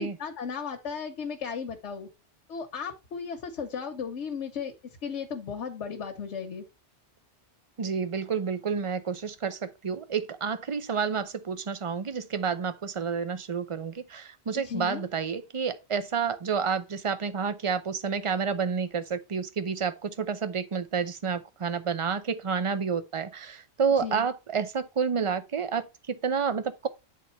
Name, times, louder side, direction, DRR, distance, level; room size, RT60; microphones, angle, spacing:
voice 1, 0.0-2.1 2.5-6.6 14.5-15.0 24.0-24.3, left 6 dB, 85° left, 1.2 m, -35 dB
voice 2, 7.8-26.9, right 6 dB, 35° right, 0.6 m, -29 dB
8.4 x 4.2 x 4.3 m
omnidirectional pair, 1.2 m